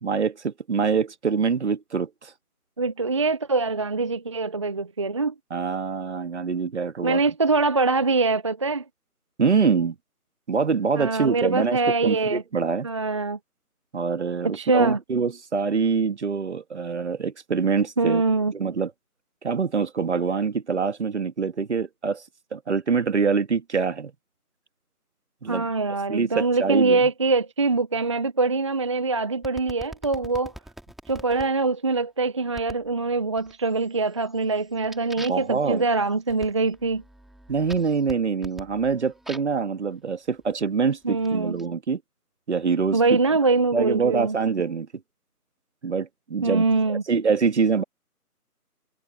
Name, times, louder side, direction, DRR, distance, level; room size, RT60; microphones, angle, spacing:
voice 1, 0.0-2.3 5.5-7.2 9.4-9.9 10.5-12.9 13.9-18.2 18.5-18.9 19.4-22.2 22.5-24.1 25.4-25.7 26.1-27.0 35.2-35.8 37.5-42.0 42.5-43.2 43.7-44.9 45.8-47.8, right 5 dB, 45° right, 2.6 m, -25 dB
voice 2, 2.8-5.3 7.0-8.8 11.0-12.4 12.8-13.4 14.4-15.0 18.0-18.5 25.5-30.5 31.1-37.0 41.0-41.5 42.9-44.4 46.4-47.0, right 3 dB, 20° right, 0.9 m, -23 dB
sound 1, 29.4-31.5 32.6-32.9 33.4-33.9 34.2-39.6 40.4-41.7, right 1 dB, ahead, 5.4 m, -44 dB
figure-of-eight pair, 155°, 46 cm